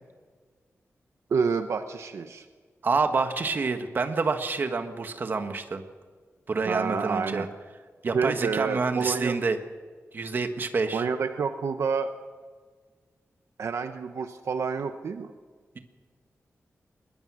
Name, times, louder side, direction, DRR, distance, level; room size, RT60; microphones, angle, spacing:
voice 1, 1.3-2.5 6.7-7.5 8.1-9.3 10.9-12.1 13.6-15.3, right 5 dB, 70° right, 7 dB, 1.0 m, -28 dB
voice 2, 2.8-5.8 6.5-7.5 8.0-9.6 10.1-11.0, right 4 dB, 40° right, 7 dB, 1.5 m, -27 dB
21.5 x 20.5 x 6.3 m, 1.5 s
wide cardioid pair, 180°, 5 cm